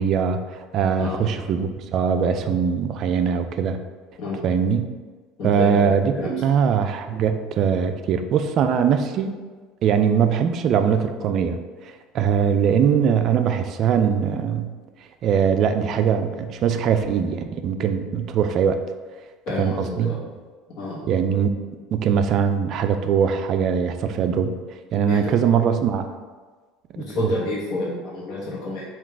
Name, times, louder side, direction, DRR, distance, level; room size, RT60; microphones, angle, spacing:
voice 1, 0.0-3.8 4.4-4.9 5.4-9.3 9.8-14.7 15.2-18.8 19.6-20.2 21.1-21.5 21.9-24.6 24.9-26.1 26.9-27.3, right 7 dB, 45° right, 8 dB, 0.3 m, -21 dB
voice 2, 1.0-1.4 4.2-4.4 5.4-6.3 19.5-20.2 20.8-21.1 25.1-25.3 26.9-28.8, left 2 dB, 50° left, -8 dB, 1.0 m, -29 dB
3.7 x 2.3 x 4.5 m, 1.4 s
cardioid pair, 140°, 0 cm